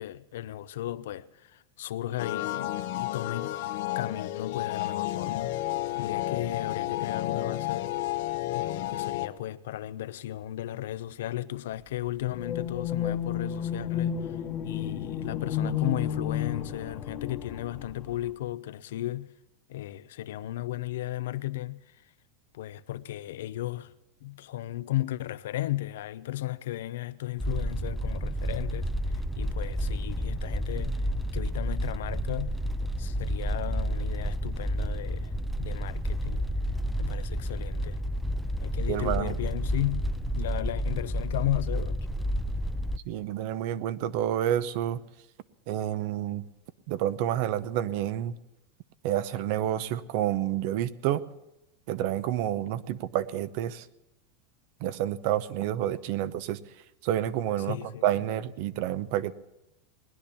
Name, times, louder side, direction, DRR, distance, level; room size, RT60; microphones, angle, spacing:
voice 1, 0.0-3.6 3.9-5.7 6.0-7.9 8.5-14.4 14.6-19.3 19.7-22.0 22.5-23.9 24.2-31.1 31.3-32.6 33.0-35.3 35.6-36.5 37.0-38.0 38.6-40.1 40.3-42.1 57.6-58.0, left 14 dB, 80° left, 0.7 m, -35 dB
sound 1, 2.2-9.3, left 15 dB, 65° left, 1.0 m, -31 dB
sound 2, 12.3-18.3, left 8 dB, 30° left, 1.2 m, -32 dB
sound 3, 27.4-43.0, equal, ahead, 0.4 m, -30 dB
voice 2, 38.9-39.4 43.1-45.0 45.7-46.4 46.9-48.4 49.0-51.2 51.9-53.8 54.8-56.6 57.0-57.8 58.0-59.3, right 12 dB, 55° right, 0.8 m, -29 dB
19.5 x 10.5 x 7.0 m
supercardioid pair, 150°, 0 cm